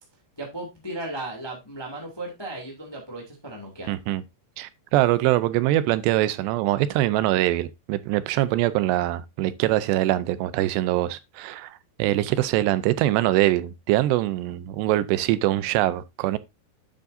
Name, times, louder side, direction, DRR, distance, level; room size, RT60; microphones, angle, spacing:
voice 1, 0.4-3.9, right 2 dB, 15° left, 1.0 m, -36 dB
voice 2, 3.9-4.2 4.6-16.4, right 15 dB, 80° right, 2.7 m, -23 dB
9.5 x 7.5 x 2.7 m
omnidirectional pair, 5.1 m